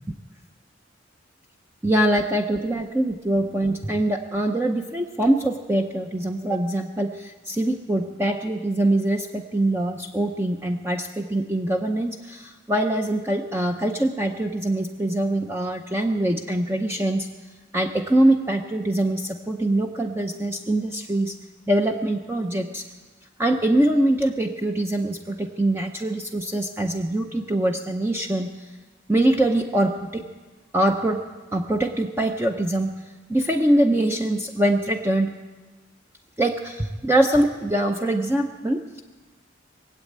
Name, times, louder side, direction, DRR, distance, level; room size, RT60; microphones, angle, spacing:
voice 1, 1.8-17.3 17.7-21.3 21.7-22.8 23.4-28.5 29.1-30.2 30.7-31.2 31.5-32.9 33.3-35.3 36.4-39.0, right 1 dB, 10° right, 3 dB, 0.6 m, -23 dB
20.5 x 8.2 x 8.5 m, 1.3 s
head